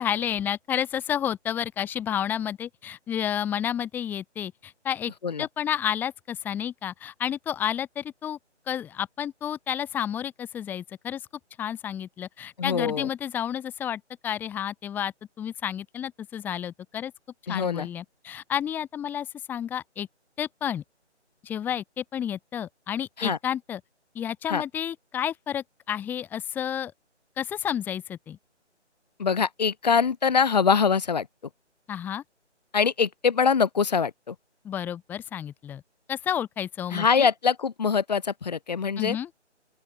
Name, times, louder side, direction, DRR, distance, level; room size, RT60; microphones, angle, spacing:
voice 1, 0.0-5.1 5.4-8.4 8.7-11.3 11.6-17.1 17.5-20.1 20.4-20.8 21.4-23.8 24.2-26.9 27.4-28.4 31.9-32.2 34.7-35.8 36.1-37.3 39.0-39.3, left 9 dB, 5° left, 3.5 m, -31 dB
voice 2, 12.6-13.1 17.5-17.9 23.2-23.4 24.5-24.6 29.2-31.3 32.7-34.4 36.9-39.2, left 6 dB, 35° left, 5.7 m, -23 dB
open air
figure-of-eight pair, 155°, 35 cm